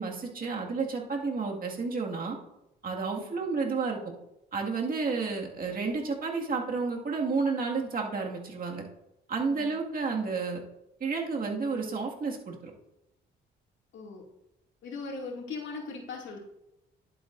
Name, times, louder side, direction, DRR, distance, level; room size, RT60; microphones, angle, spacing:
voice 1, 0.0-2.4 2.8-4.0 4.5-8.8 9.3-10.6 11.0-12.7, right 4 dB, 45° right, 0 dB, 2.0 m, -31 dB
voice 2, 13.9-14.2 14.8-16.4, left 4 dB, 70° left, -1 dB, 2.4 m, -39 dB
11.0 x 8.3 x 2.6 m, 0.88 s
cardioid pair, 90°, 20 cm